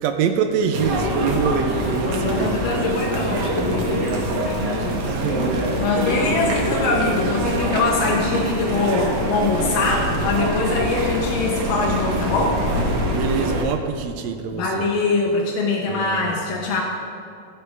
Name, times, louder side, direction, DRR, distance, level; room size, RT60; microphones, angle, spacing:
voice 1, 0.0-2.6 5.0-5.6 13.1-14.9 15.9-16.3, right 6 dB, 85° right, 6 dB, 1.5 m, -25 dB
sound 1, 0.7-13.6, right 1 dB, 60° right, 1.9 m, -24 dB
voice 2, 2.0-5.1 5.8-12.6 14.5-16.8, left 3 dB, 85° left, -2 dB, 2.7 m, -23 dB
15.5 x 6.6 x 5.2 m, 2.4 s
omnidirectional pair, 3.8 m